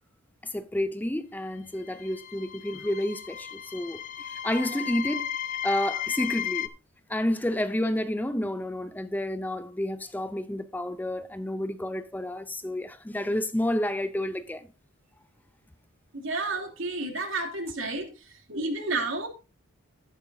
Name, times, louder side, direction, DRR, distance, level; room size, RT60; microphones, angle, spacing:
voice 1, 0.4-5.4 5.6-6.7 7.1-14.7, left 1 dB, 10° left, 0.4 m, -30 dB
sound 1, 1.8-6.7, left 10 dB, 40° left, 0.8 m, -34 dB
voice 2, 16.1-19.3, right 3 dB, 70° right, 3.0 m, -31 dB
12.5 x 11.0 x 2.7 m
head